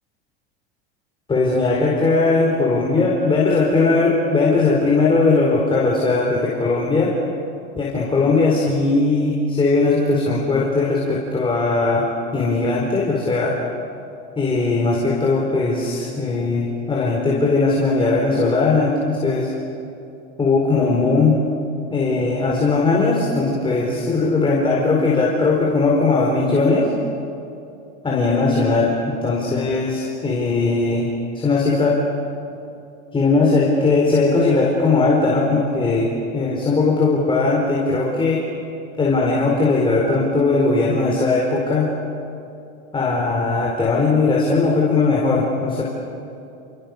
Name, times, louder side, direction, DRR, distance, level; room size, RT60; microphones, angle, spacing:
voice 1, 1.3-7.1 7.8-12.1 12.3-13.6 14.4-19.5 20.4-21.4 21.9-26.9 28.0-32.0 33.1-38.5 39.0-41.9 42.9-45.8, left 3 dB, 15° left, -2 dB, 4.7 m, -19 dB
29.0 x 28.5 x 6.9 m, 2.8 s
supercardioid pair, 125°, 30 cm